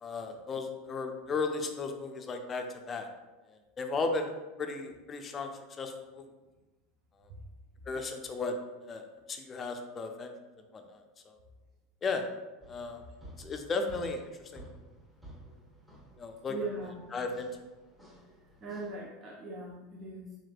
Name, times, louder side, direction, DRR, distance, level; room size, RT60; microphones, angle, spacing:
voice 1, 0.0-3.1 3.5-4.3 4.6-5.5 5.8-6.3 7.9-8.5 8.8-10.3 10.7-11.0 11.3-11.4 12.0-12.2 12.7-13.0 13.4-14.7 16.2-16.5 17.1-17.5, left 4 dB, 30° left, 5 dB, 0.5 m, -35 dB
sound 1, 12.6-19.0, right 1 dB, 5° right, 1.0 m, -53 dB
voice 2, 16.5-17.1 18.6-20.4, right 3 dB, 40° right, -3 dB, 0.6 m, -40 dB
4.2 x 3.2 x 2.4 m, 1.2 s
supercardioid pair, 105°, 0 cm